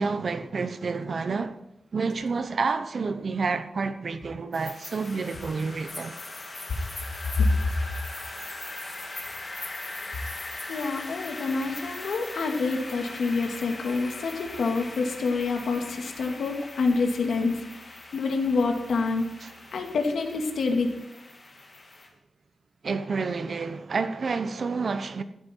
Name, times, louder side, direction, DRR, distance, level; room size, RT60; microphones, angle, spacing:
voice 1, 0.0-1.6 1.9-6.2 19.4-19.5 22.8-25.2, right 4 dB, 50° right, 0.9 m, -29 dB
sound 1, 4.5-22.1, left 2 dB, 35° left, 3.2 m, -40 dB
voice 2, 10.7-17.8 18.1-19.2 19.7-20.9, left 4 dB, 90° left, 2.4 m, -27 dB
14.5 x 13.5 x 4.6 m
wide cardioid pair, 140°, 0 cm